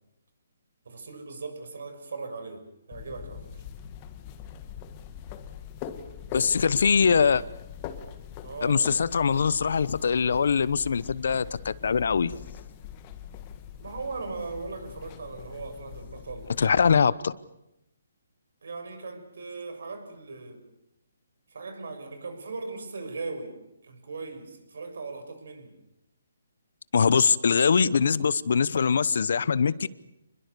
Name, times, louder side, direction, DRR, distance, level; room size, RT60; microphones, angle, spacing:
voice 1, 0.8-3.6 8.4-8.9 13.8-16.5 18.6-20.6 21.5-23.5 23.8-25.7, right 4 dB, 70° right, 8 dB, 6.6 m, -38 dB
sound 1, 2.9-17.0, left 9 dB, 25° left, 1.9 m, -42 dB
voice 2, 6.3-7.4 8.6-12.4 16.6-17.3 26.9-29.9, left 6 dB, 65° left, 19 dB, 0.9 m, -22 dB
28.0 x 21.5 x 6.9 m, 0.86 s
hypercardioid pair, 160°, 0 cm